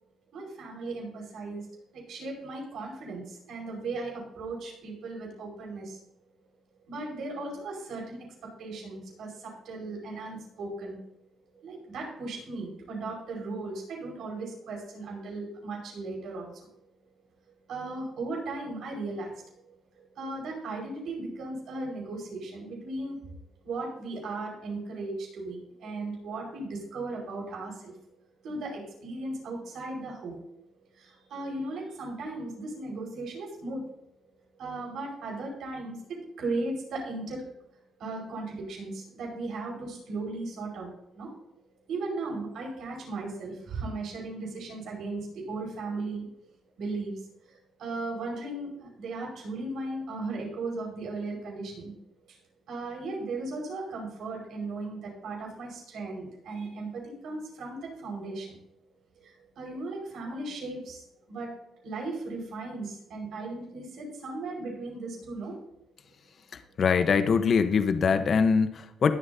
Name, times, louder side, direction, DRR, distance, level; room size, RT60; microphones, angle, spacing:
voice 1, 0.3-1.7 1.9-6.0 6.9-11.0 11.6-16.5 17.7-19.4 20.0-23.4 23.6-28.0 28.4-30.4 30.9-33.8 34.6-37.4 38.0-41.3 41.9-46.2 46.8-51.9 52.7-58.6 59.2-61.5 61.8-65.5, right 2 dB, 75° right, -1 dB, 5.1 m, -37 dB
voice 2, 66.8-69.1, left 5 dB, 50° left, 9 dB, 1.0 m, -23 dB
21.0 x 7.8 x 2.8 m, 0.80 s
cardioid pair, 90°, 0 cm